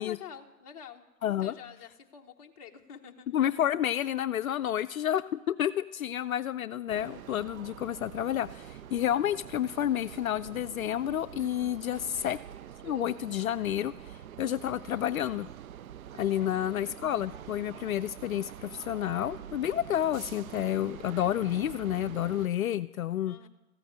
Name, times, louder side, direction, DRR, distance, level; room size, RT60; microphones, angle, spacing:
voice 1, 0.0-1.0 1.4-3.3 12.1-12.4 16.4-16.8 23.2-23.5, left 8 dB, 25° left, 1 dB, 1.0 m, -48 dB
voice 2, 1.2-1.5 3.3-12.4 12.8-15.5 16.2-23.4, left 11 dB, 65° left, 12 dB, 0.5 m, -30 dB
sound 1, 6.9-22.5, right 10 dB, 70° right, 0.6 m, -46 dB
14.5 x 9.1 x 8.7 m, 1.0 s
hypercardioid pair, 150°, 44 cm